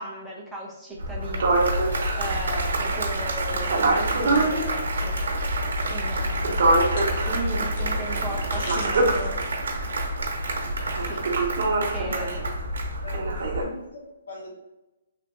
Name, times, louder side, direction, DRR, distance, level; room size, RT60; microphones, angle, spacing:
voice 1, 0.0-5.2 5.9-6.8 7.1-9.4 11.0-12.5, right 1 dB, ahead, -5 dB, 0.5 m, -37 dB
sound 1, 1.0-13.6, right 1 dB, 45° right, 0.7 m, -26 dB
Applause, 1.1-13.6, right 3 dB, 80° right, 0.9 m, -31 dB
sound 2, 5.7-11.6, left 1 dB, 40° left, 0.6 m, -44 dB
voice 2, 7.9-9.3 12.0-12.5 13.0-14.5, left 1 dB, 75° left, -3 dB, 1.4 m, -41 dB
3.2 x 2.9 x 3.0 m, 0.98 s
hypercardioid pair, 180°, 0 cm